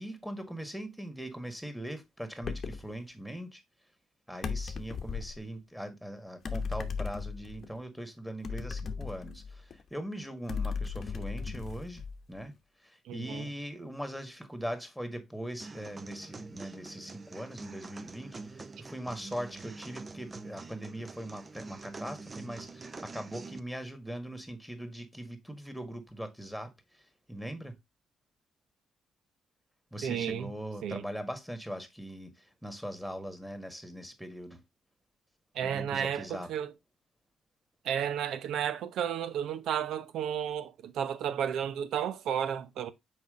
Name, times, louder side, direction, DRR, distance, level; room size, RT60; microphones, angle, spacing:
voice 1, 0.0-3.6 4.3-12.0 12.3-12.5 12.8-27.8 29.9-34.6 35.6-36.5, equal, ahead, 1.7 m, -41 dB
sound 1, 2.4-2.9 4.4-5.4 6.4-7.7 8.4-9.8 10.5-12.4, left 5 dB, 50° left, 0.9 m, -36 dB
voice 2, 13.1-13.4 30.0-30.5 30.8-31.0 35.5-36.7 37.8-42.9, right 9 dB, 80° right, 0.8 m, -32 dB
sound 2, 15.6-23.6, right 3 dB, 30° right, 0.7 m, -45 dB
6.2 x 4.4 x 3.6 m
cardioid pair, 90°, 0 cm